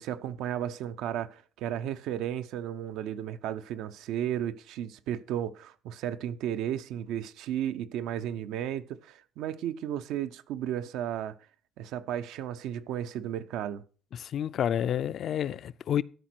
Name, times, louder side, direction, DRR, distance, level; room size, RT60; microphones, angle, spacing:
voice 1, 0.0-11.4 11.8-13.8, right 10 dB, 85° right, 0.6 m, -34 dB
voice 2, 14.1-16.0, left 9 dB, 50° left, 0.4 m, -29 dB
12.5 x 5.1 x 6.1 m
cardioid pair, 145°, 0 cm